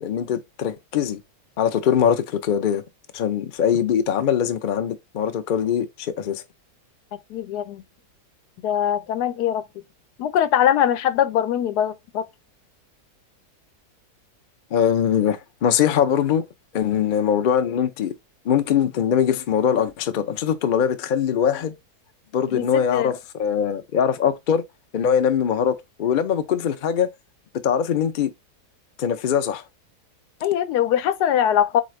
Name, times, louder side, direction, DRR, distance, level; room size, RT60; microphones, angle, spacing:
voice 1, 0.0-1.2 1.6-2.8 3.1-6.4 14.7-16.5 16.7-18.1 18.4-21.7 22.3-24.6 24.9-27.1 27.6-28.3 29.0-29.6, left 8 dB, 65° left, 0.5 m, -22 dB
voice 2, 7.3-7.8 8.6-9.6 10.2-12.3 22.5-23.1 30.4-31.8, left 10 dB, 85° left, 1.2 m, -22 dB
4.2 x 3.8 x 3.1 m
omnidirectional pair, 1.7 m